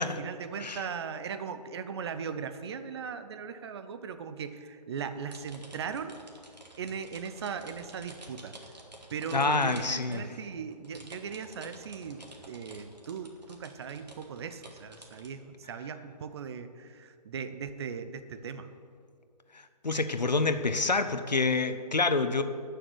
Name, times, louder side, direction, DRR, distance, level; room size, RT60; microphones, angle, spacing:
voice 1, 0.0-6.2 6.8-8.5 9.1-18.7, right 6 dB, 40° right, 10 dB, 0.9 m, -38 dB
sound 1, 5.3-15.3, right 1 dB, 80° right, 2.5 m, -50 dB
voice 2, 9.3-10.2 19.8-22.4, left 3 dB, 80° left, 10 dB, 1.0 m, -27 dB
12.5 x 6.6 x 8.0 m, 2.2 s
figure-of-eight pair, 140°, 21 cm